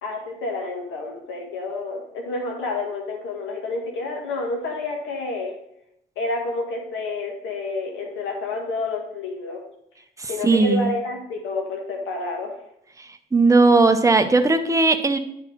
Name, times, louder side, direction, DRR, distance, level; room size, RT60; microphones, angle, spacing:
voice 1, 0.0-5.5 6.1-9.6 10.3-12.6, left 2 dB, 85° left, 1 dB, 1.6 m, -29 dB
voice 2, 10.2-10.9 13.0-15.2, right 3 dB, 15° right, 7 dB, 0.8 m, -18 dB
9.9 x 3.9 x 4.5 m, 0.76 s
cardioid pair, 90°, 20 cm